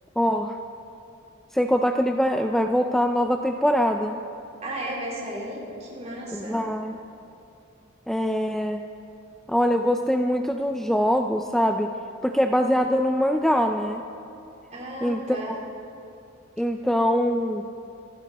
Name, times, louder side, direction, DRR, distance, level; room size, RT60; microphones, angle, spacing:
voice 1, 0.2-0.6 1.5-4.2 6.3-7.0 8.1-8.8 9.5-11.9 12.2-14.0 15.0-15.6 16.6-17.6, equal, ahead, 4 dB, 0.4 m, -23 dB
voice 2, 4.6-6.6 14.7-15.6, right 1 dB, 35° right, -4 dB, 4.2 m, -34 dB
26.5 x 12.0 x 4.2 m, 2.7 s
head